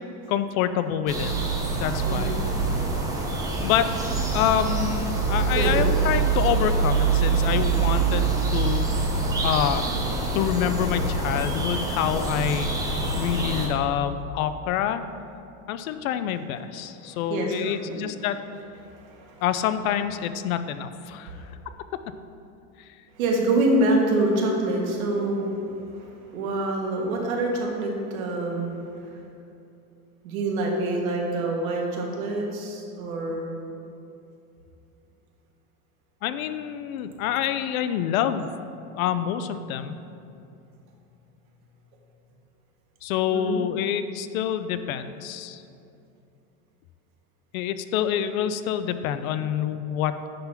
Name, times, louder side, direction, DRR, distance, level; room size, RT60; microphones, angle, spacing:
voice 1, 0.3-1.3 1.8-2.3 3.6-3.9 4.3-8.8 9.4-9.9 10.3-12.7 13.2-15.0 15.7-18.4 19.4-21.3 36.2-38.5 38.9-39.9 43.0-45.6 47.5-50.3, left 10 dB, 70° left, 11 dB, 0.6 m, -27 dB
sound 1, 1.1-13.7, right 4 dB, 10° right, 0.8 m, -25 dB
voice 2, 2.0-2.9 5.5-5.8 17.0-18.0 18.8-19.4 21.3-21.5 23.2-25.5 25.9-29.1 30.2-33.5 43.3-43.6, right 2 dB, 70° right, 0 dB, 1.7 m, -26 dB
10.0 x 3.9 x 5.7 m, 2.6 s
supercardioid pair, 155°, 43 cm